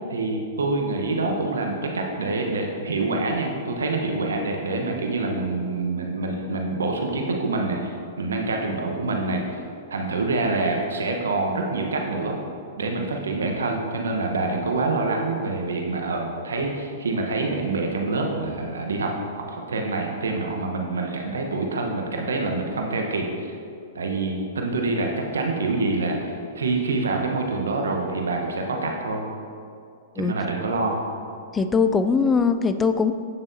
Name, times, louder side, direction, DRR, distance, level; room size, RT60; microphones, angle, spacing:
voice 1, 0.1-9.4 9.9-12.4 12.8-23.3 23.9-29.2 30.1-31.0, right 3 dB, 85° right, 2 dB, 1.0 m, -26 dB
voice 2, 31.5-33.1, left 5 dB, 15° left, 10 dB, 0.3 m, -21 dB
8.8 x 7.1 x 2.7 m, 2.5 s
hypercardioid pair, 115°, 0 cm